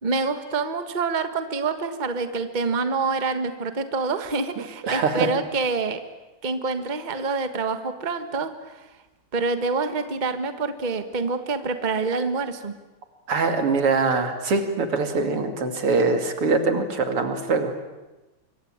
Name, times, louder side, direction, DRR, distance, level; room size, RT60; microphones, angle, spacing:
voice 1, 0.0-6.0 6.4-8.8 9.3-12.7, right 4 dB, 25° right, 9 dB, 1.4 m, -26 dB
voice 2, 4.8-5.3 13.3-17.7, right 4 dB, 85° right, 6 dB, 3.4 m, -23 dB
25.5 x 24.0 x 8.8 m, 1.1 s
omnidirectional pair, 2.4 m